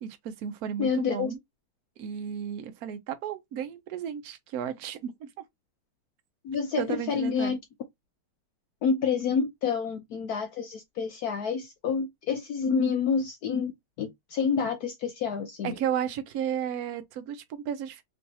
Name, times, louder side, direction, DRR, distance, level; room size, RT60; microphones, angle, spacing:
voice 1, 0.0-1.4 2.0-5.3 6.8-7.6 15.6-18.0, right 9 dB, 70° right, 0.8 m, -33 dB
voice 2, 0.8-1.3 6.4-7.6 8.8-13.7 14.0-15.8, left 6 dB, 80° left, 0.8 m, -28 dB
3.3 x 3.1 x 2.8 m
omnidirectional pair, 2.3 m